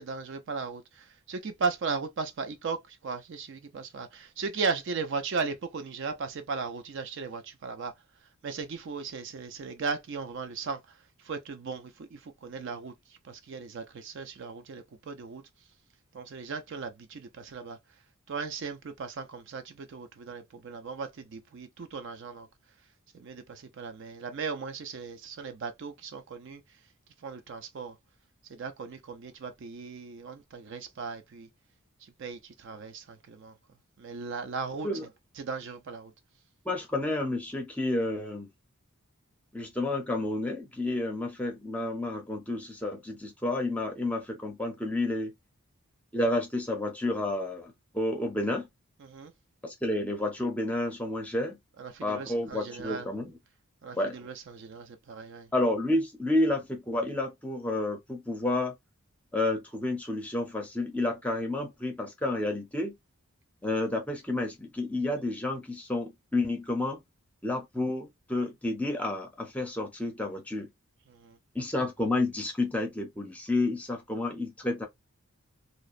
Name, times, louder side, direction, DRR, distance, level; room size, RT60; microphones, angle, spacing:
voice 1, 0.0-7.9 8.4-10.8 11.2-12.9 13.2-15.4 16.1-17.8 18.3-22.5 23.1-26.6 27.2-28.0 28.5-31.5 32.0-33.5 34.0-34.9 35.4-36.1 49.0-49.3 51.8-53.1 53.8-55.5 71.1-71.4, right 4 dB, 55° right, 0.4 m, -37 dB
voice 2, 36.7-38.5 39.5-45.3 46.1-48.7 49.6-51.6 52.0-53.3 54.0-54.2 55.5-58.7 59.3-62.9 63.6-67.0 67.4-70.7 71.5-74.9, left 2 dB, 5° left, 0.5 m, -30 dB
2.7 x 2.1 x 2.4 m
head